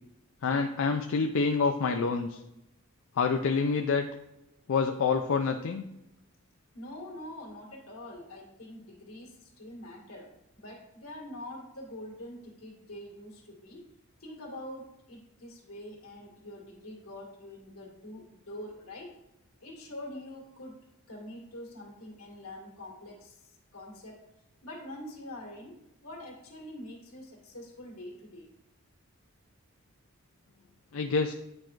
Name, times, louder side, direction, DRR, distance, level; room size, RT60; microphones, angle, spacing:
voice 1, 0.4-2.4 3.2-4.0 4.7-5.8 30.9-31.3, left 4 dB, 65° left, 5 dB, 0.4 m, -27 dB
voice 2, 6.7-10.3 10.6-13.9 14.2-19.1 19.6-20.8 21.1-24.2 24.6-28.5, left 1 dB, 85° left, -2 dB, 1.9 m, -45 dB
9.5 x 4.5 x 2.5 m, 0.90 s
head